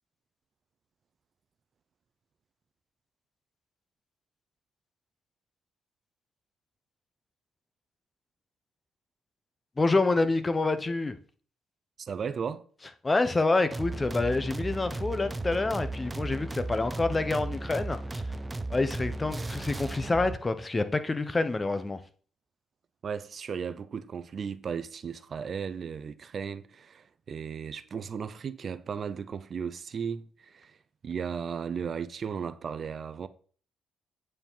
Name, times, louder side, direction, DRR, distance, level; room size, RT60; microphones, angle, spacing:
voice 1, 9.8-11.2 13.0-18.3 18.7-22.0, left 3 dB, 25° left, 1.0 m, -27 dB
voice 2, 12.0-12.7 23.0-30.8 31.0-33.3, right 6 dB, 50° right, 0.7 m, -35 dB
sound 1, 13.7-20.4, right 2 dB, 15° right, 0.8 m, -35 dB
8.9 x 4.9 x 5.6 m
cardioid pair, 80°, 0 cm